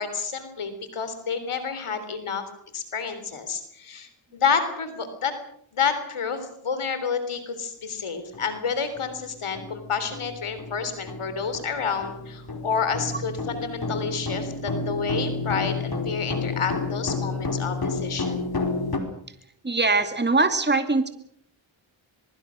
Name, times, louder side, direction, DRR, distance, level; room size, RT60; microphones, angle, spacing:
voice 1, 0.0-2.4 2.7-5.3 5.7-18.4, left 6 dB, 80° left, 10 dB, 3.7 m, -29 dB
sound 1, 8.3-8.4 9.0-9.1 9.5-19.0, left 3 dB, 45° left, 4.8 m, -30 dB
voice 2, 19.6-21.1, right 3 dB, 20° right, 8 dB, 2.4 m, -22 dB
23.0 x 23.0 x 6.4 m, 0.66 s
cardioid pair, 55°, 49 cm